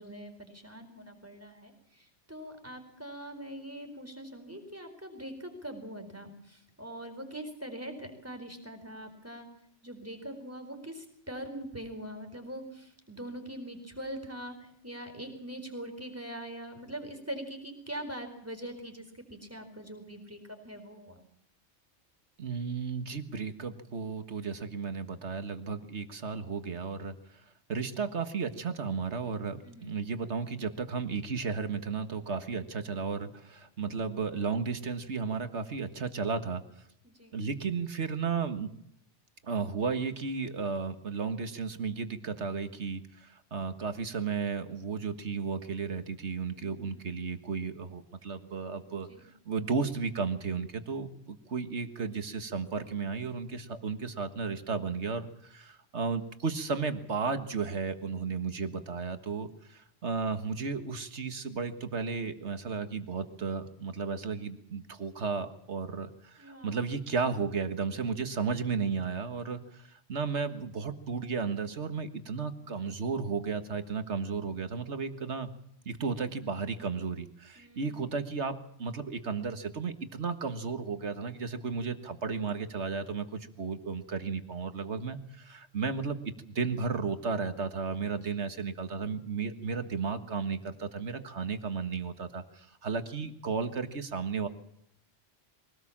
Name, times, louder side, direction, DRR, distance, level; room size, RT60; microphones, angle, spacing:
voice 1, 0.0-9.5 9.8-21.2 29.6-30.0 37.0-37.4 46.5-47.2 48.9-49.3 66.4-66.9 67.3-67.4 67.9-68.5 77.6-78.1 88.3-88.5, right 1 dB, 10° right, 5 dB, 4.4 m, -43 dB
voice 2, 22.4-27.4 27.7-36.6 37.3-38.7 39.4-49.1 49.5-75.5 75.9-86.2 86.5-94.5, right 5 dB, 70° right, 9 dB, 1.8 m, -34 dB
23.5 x 18.5 x 7.3 m, 0.73 s
omnidirectional pair, 1.2 m